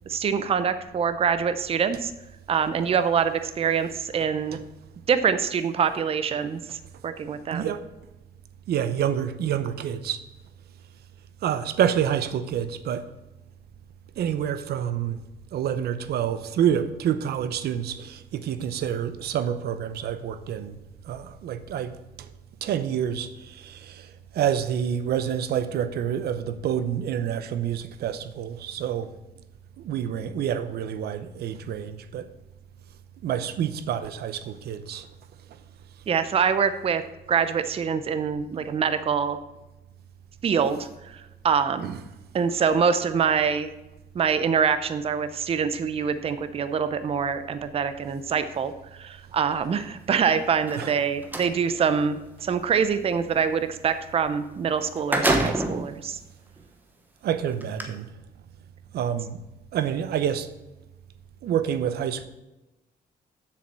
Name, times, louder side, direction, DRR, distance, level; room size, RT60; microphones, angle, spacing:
voice 1, 0.1-2.1 2.5-4.6 5.1-7.7 36.1-37.0 37.3-39.4 40.4-41.9 42.3-43.7 44.1-56.2, right 6 dB, 40° right, 0.6 m, -25 dB
voice 2, 7.5-7.8 8.7-10.2 11.4-13.1 14.2-15.2 15.5-20.8 21.0-21.9 22.2-22.3 22.6-29.1 29.8-32.3 33.2-35.1 41.8-42.0 50.8-50.9 57.2-58.1 58.9-59.4 59.7-60.5 61.4-62.3, right 9 dB, 85° right, 0.7 m, -28 dB
sound 1, 50.6-51.5 54.4-54.5 54.8-55.9 56.6-56.7 57.6-57.8, right 1 dB, 10° right, 1.0 m, -26 dB
7.4 x 6.9 x 7.4 m
cardioid pair, 155°, 16 cm